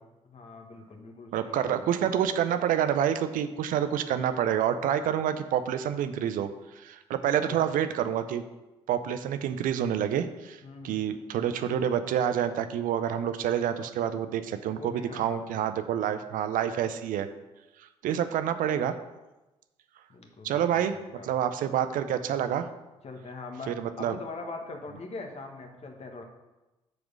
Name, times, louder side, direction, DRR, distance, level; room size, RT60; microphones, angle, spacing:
voice 1, 0.2-1.9 7.2-7.6 10.6-11.1 14.7-15.4 20.1-21.5 23.0-26.2, left 3 dB, 40° left, 3 dB, 1.6 m, -42 dB
voice 2, 1.3-6.5 6.8-8.4 8.9-17.3 18.0-19.0 20.4-21.0 21.2-22.7 23.7-24.2, right 9 dB, 60° right, 10 dB, 0.6 m, -28 dB
6.4 x 5.0 x 6.4 m, 1.0 s
figure-of-eight pair, 45°, 16 cm